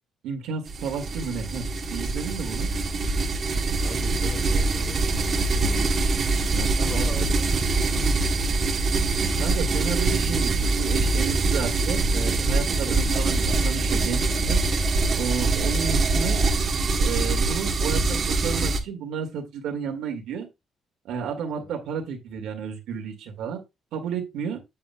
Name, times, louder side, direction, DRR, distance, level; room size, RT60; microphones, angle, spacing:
voice 1, 0.2-2.7 6.5-7.3 9.4-14.6 15.2-16.4 17.0-20.5 21.0-23.6 23.9-24.6, right 6 dB, 85° right, 2.1 m, -32 dB
sound 1, 0.7-18.8, right 3 dB, 50° right, 1.3 m, -24 dB
voice 2, 3.8-6.0 6.8-7.6 7.9-8.4 12.9-13.1 21.5-21.7, left 3 dB, 50° left, 3.0 m, -40 dB
8.6 x 7.9 x 2.3 m
cardioid pair, 90°, 0 cm